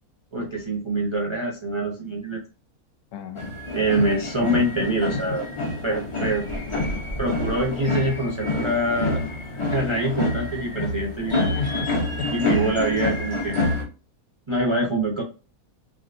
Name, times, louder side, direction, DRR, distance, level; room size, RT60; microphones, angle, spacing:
voice 1, 0.3-2.4 3.7-5.4 5.8-6.5 7.2-9.2 9.7-11.5 12.3-13.6 14.5-15.2, right 1 dB, 50° right, -1 dB, 0.3 m, -25 dB
voice 2, 3.1-3.5 5.3-5.4 6.7-7.2 11.5-12.8, left 6 dB, 85° left, 6 dB, 1.2 m, -33 dB
sound 1, 3.4-13.8, left 2 dB, 35° left, 0.5 m, -27 dB
3.4 x 2.5 x 2.5 m, 0.32 s
omnidirectional pair, 1.6 m